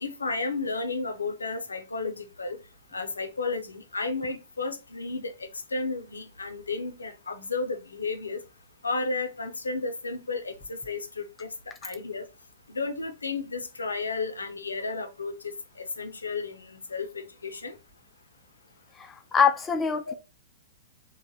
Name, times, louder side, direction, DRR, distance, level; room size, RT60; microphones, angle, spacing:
voice 1, 0.0-2.6 2.9-8.4 8.8-11.5 11.8-12.2 12.7-17.7 20.1-20.2, left 3 dB, 85° left, 0.5 m, -33 dB
voice 2, 19.0-20.1, left 6 dB, 15° left, 0.4 m, -24 dB
3.1 x 2.1 x 2.7 m
figure-of-eight pair, 110°, 0 cm